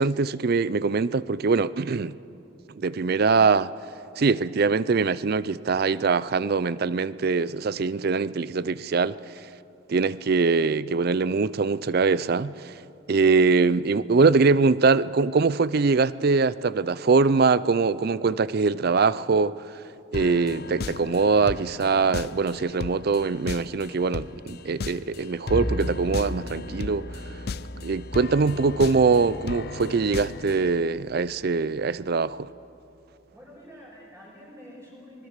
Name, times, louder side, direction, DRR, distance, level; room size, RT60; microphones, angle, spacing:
voice 1, 0.0-2.1 2.8-3.7 4.2-9.2 9.9-12.7 13.1-19.6 20.1-27.1 27.8-32.5, right 4 dB, 45° right, 0.4 m, -23 dB
sound 1, 20.1-30.8, left 4 dB, 50° left, 0.5 m, -37 dB
Bowed string instrument, 25.5-31.9, equal, 5° left, 3.7 m, -37 dB
voice 2, 33.3-35.3, equal, 15° right, 5.5 m, -47 dB
25.5 x 20.0 x 6.6 m
head